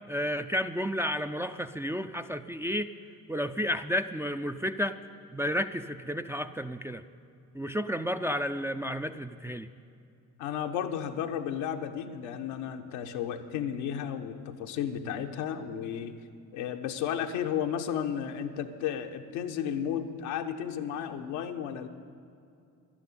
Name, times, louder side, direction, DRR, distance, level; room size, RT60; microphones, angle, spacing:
voice 1, 0.1-2.9 3.3-5.0 5.3-7.0 7.5-9.7, equal, 5° right, 7 dB, 0.4 m, -31 dB
voice 2, 10.4-16.1 16.5-21.9, left 9 dB, 80° left, 5 dB, 1.0 m, -33 dB
12.0 x 10.0 x 8.5 m, 2.5 s
hypercardioid pair, 60°, 41 cm